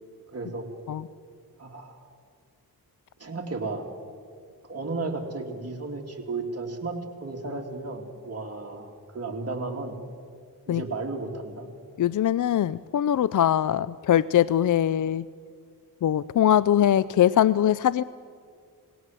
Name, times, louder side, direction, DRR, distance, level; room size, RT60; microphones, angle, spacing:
voice 1, 0.3-0.7 1.6-2.0 3.2-3.8 4.7-10.0 10.7-11.7, right 3 dB, 35° right, 2 dB, 3.0 m, -34 dB
voice 2, 12.0-15.2 16.0-18.0, left 10 dB, 50° left, 19 dB, 0.5 m, -22 dB
20.5 x 17.0 x 7.7 m, 2.1 s
cardioid pair, 55°, 40 cm